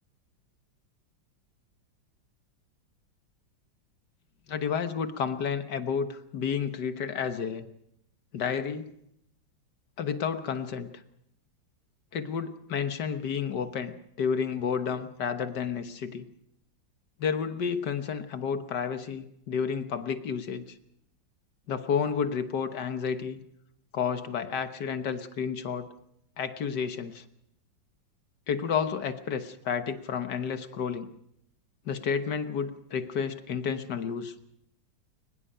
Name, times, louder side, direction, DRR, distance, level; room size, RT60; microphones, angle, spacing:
voice 1, 4.5-7.7 8.3-8.9 10.0-10.9 12.1-13.9 14.2-16.3 17.2-20.7 21.7-23.4 23.9-25.9 26.4-27.2 28.5-31.1 31.9-34.3, left 6 dB, 60° left, 9 dB, 1.7 m, -31 dB
22.0 x 20.5 x 5.7 m, 0.79 s
omnidirectional pair, 2.2 m